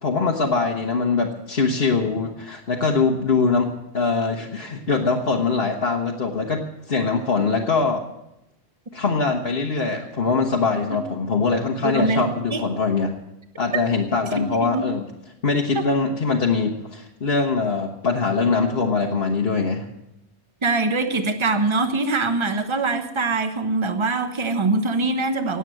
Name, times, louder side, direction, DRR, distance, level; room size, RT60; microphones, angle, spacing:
voice 1, 0.0-8.1 8.9-13.1 13.6-15.1 15.4-19.9, left 4 dB, 50° left, 0 dB, 1.4 m, -22 dB
voice 2, 11.8-12.3 12.5-12.6 14.3-14.9 15.7-15.8 20.6-25.6, right 3 dB, 25° right, 8 dB, 1.1 m, -23 dB
18.5 x 8.2 x 7.6 m, 0.88 s
omnidirectional pair, 1.3 m